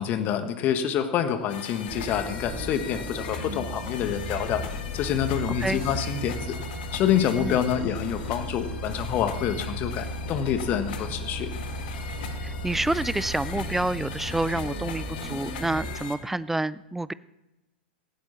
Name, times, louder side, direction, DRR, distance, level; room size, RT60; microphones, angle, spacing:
voice 1, 0.0-4.7 4.9-6.6 6.9-11.5, left 9 dB, 30° left, 9 dB, 1.6 m, -27 dB
sound 1, 1.5-16.2, left 6 dB, 55° left, 1.8 m, -40 dB
Bus, 1.9-15.9, equal, 30° right, 5.9 m, -35 dB
voice 2, 12.4-17.1, right 2 dB, 5° right, 19 dB, 0.4 m, -28 dB
17.5 x 16.0 x 4.2 m, 1.0 s
figure-of-eight pair, 100°, 6 cm